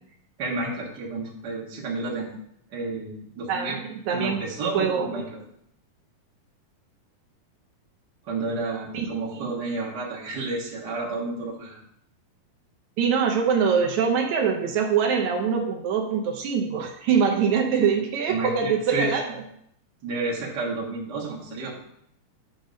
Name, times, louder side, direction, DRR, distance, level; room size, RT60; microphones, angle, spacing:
voice 1, 0.4-2.3 2.7-3.8 4.1-5.4 8.2-11.8 18.3-19.1 20.0-21.7, right 3 dB, 40° right, -4 dB, 1.6 m, -31 dB
voice 2, 3.5-4.4 4.7-5.1 8.9-9.1 13.0-19.2, right 6 dB, 75° right, 1 dB, 1.7 m, -23 dB
8.6 x 3.9 x 5.2 m, 0.71 s
omnidirectional pair, 4.2 m